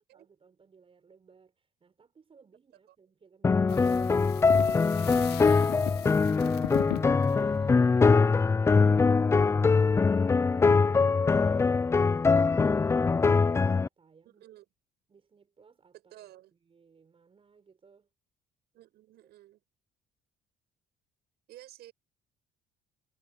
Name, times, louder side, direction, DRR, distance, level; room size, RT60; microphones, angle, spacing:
voice 1, 0.1-6.6 10.4-12.0 12.2-14.4 15.1-18.1 19.2-19.3, right 5 dB, 30° right, 6.9 m, -61 dB
sound 1, 3.4-13.9, left 4 dB, 15° left, 0.3 m, -23 dB
sound 2, 3.7-8.5, left 16 dB, 75° left, 0.7 m, -39 dB
voice 2, 14.2-14.6 16.1-16.5 18.7-19.6 21.5-21.9, right 14 dB, 75° right, 7.7 m, -53 dB
cardioid pair, 110°, 17 cm